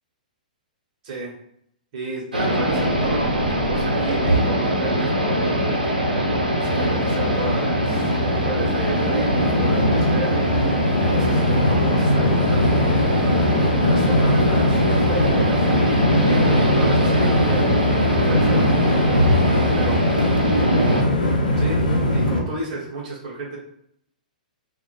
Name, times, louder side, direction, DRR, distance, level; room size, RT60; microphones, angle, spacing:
voice 1, 1.0-1.4 1.9-6.0 6.6-8.1 8.4-10.6 11.1-12.9 13.8-16.0 16.3-19.2 19.7-20.1 20.6-21.1 21.6-21.8 22.1-23.6, right 2 dB, 45° right, -4 dB, 0.7 m, -32 dB
sound 1, 2.3-21.0, right 1 dB, 85° right, 0.6 m, -23 dB
Train, 2.4-22.4, left 1 dB, 75° left, 0.6 m, -21 dB
2.1 x 2.0 x 2.9 m, 0.71 s
figure-of-eight pair, 110°, 5 cm